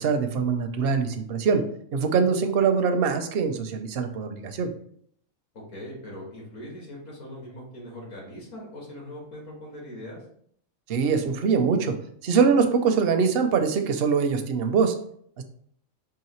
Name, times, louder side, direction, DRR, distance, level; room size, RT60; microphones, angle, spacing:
voice 1, 0.0-1.6 1.9-4.7 10.9-11.9 12.2-14.9 15.4-15.5, right 5 dB, 60° right, 7 dB, 0.6 m, -23 dB
voice 2, 5.5-10.2, left 1 dB, 75° left, -2 dB, 1.8 m, -41 dB
4.7 x 2.9 x 3.0 m, 0.65 s
omnidirectional pair, 1.3 m